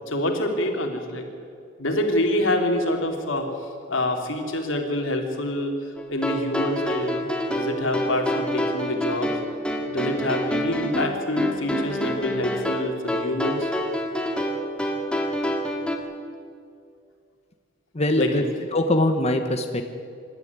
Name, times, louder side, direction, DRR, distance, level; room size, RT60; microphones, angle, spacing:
voice 1, 0.1-1.3 1.8-3.4 3.9-5.7 6.1-9.3 9.9-13.7 18.1-18.5, left 1 dB, 85° left, 3 dB, 3.2 m, -26 dB
sound 1, 6.0-16.0, equal, 5° left, 2.2 m, -27 dB
voice 2, 17.9-18.4 18.7-19.8, left 1 dB, 35° left, 5 dB, 1.1 m, -22 dB
26.0 x 12.5 x 9.5 m, 2.3 s
head